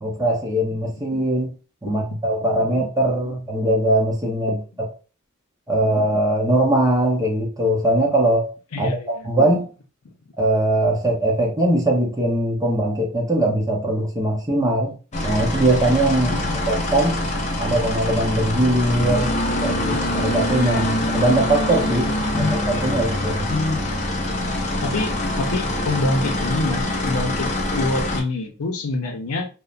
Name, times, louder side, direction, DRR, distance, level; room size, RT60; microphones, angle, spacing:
voice 1, 0.0-1.5 1.8-4.6 5.7-9.7 10.4-15.0 15.2-16.4 16.7-17.2 17.6-23.5, right 1 dB, 15° right, 0.6 m, -21 dB
voice 2, 8.7-9.3 16.3-16.7 22.3-23.0 23.5-24.0 24.8-29.5, left 2 dB, 85° left, 0.6 m, -26 dB
sound 1, 15.1-28.2, left 1 dB, 30° left, 0.5 m, -24 dB
2.9 x 2.1 x 2.4 m
head